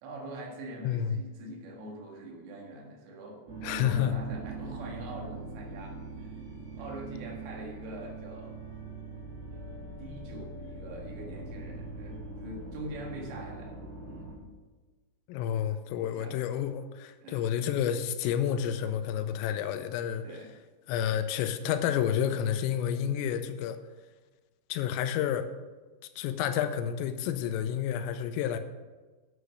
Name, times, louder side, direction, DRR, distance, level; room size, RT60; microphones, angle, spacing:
voice 1, 0.0-6.4 6.8-8.6 10.0-14.3 16.1-16.4 17.2-17.5 20.2-20.6, right 1 dB, 75° right, 1 dB, 4.0 m, -44 dB
voice 2, 0.8-1.2 3.6-4.1 15.3-20.3 20.9-23.8 24.7-25.5 26.2-28.6, left 9 dB, 85° left, 9 dB, 3.2 m, -30 dB
sound 1, 3.5-14.4, right 3 dB, 50° right, 3.9 m, -42 dB
9.5 x 8.2 x 6.3 m, 1.3 s
omnidirectional pair, 6.0 m